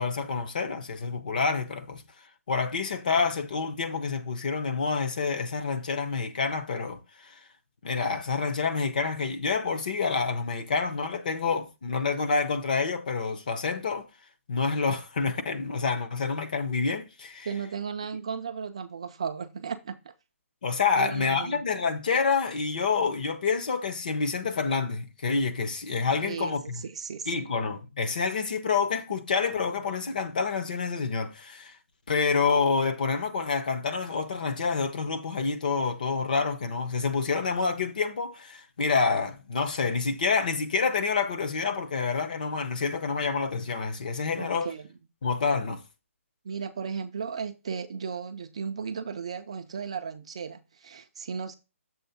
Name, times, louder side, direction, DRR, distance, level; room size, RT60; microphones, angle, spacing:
voice 1, 0.0-2.0 2.5-7.4 7.8-14.1 14.5-17.5 20.6-26.8 27.3-31.7 32.1-44.7 45.2-45.8, left 5 dB, 35° left, 0.7 m, -28 dB
voice 2, 17.5-20.1 21.0-21.6 26.2-27.5 44.4-44.9 46.4-51.5, right 6 dB, 25° right, 0.3 m, -35 dB
7.0 x 3.4 x 5.6 m
hypercardioid pair, 180°, 8 cm